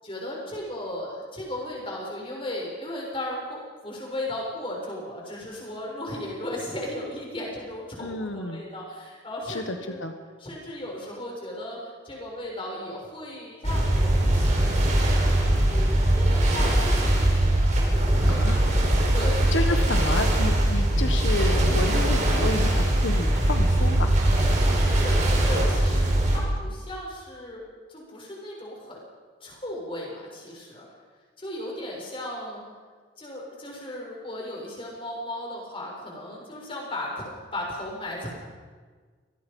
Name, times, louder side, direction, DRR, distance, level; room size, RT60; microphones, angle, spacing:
voice 1, 0.0-10.0 10.4-15.9 16.2-18.4 19.1-19.8 24.6-27.6 27.9-29.0 29.4-30.8 31.4-32.6 33.2-38.3, left 1 dB, 30° left, -2 dB, 7.0 m, -36 dB
voice 2, 8.0-8.6 9.5-10.1 18.3-18.6 19.5-24.2, left 2 dB, 90° left, 6 dB, 1.4 m, -30 dB
sound 1, 13.6-26.4, right 1 dB, 40° right, 4.9 m, -21 dB
26.0 x 19.5 x 5.5 m, 1.5 s
head